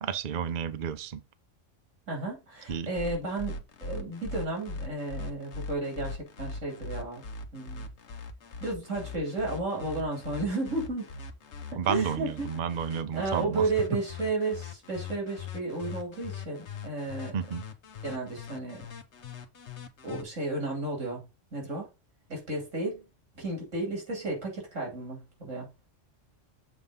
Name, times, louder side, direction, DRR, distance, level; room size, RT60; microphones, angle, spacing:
voice 1, 0.0-1.2 2.7-2.9 11.8-13.7 17.3-17.6, right 7 dB, 50° right, 0.7 m, -31 dB
voice 2, 2.1-7.2 7.5-7.9 8.6-11.1 11.7-12.5 13.1-17.4 18.0-18.9 20.0-21.2 21.5-21.9 22.3-23.1 23.4-25.7, right 2 dB, 75° right, 3.6 m, -33 dB
sound 1, 2.7-20.2, left 4 dB, 65° left, 1.3 m, -40 dB
7.3 x 3.6 x 5.3 m
omnidirectional pair, 1.3 m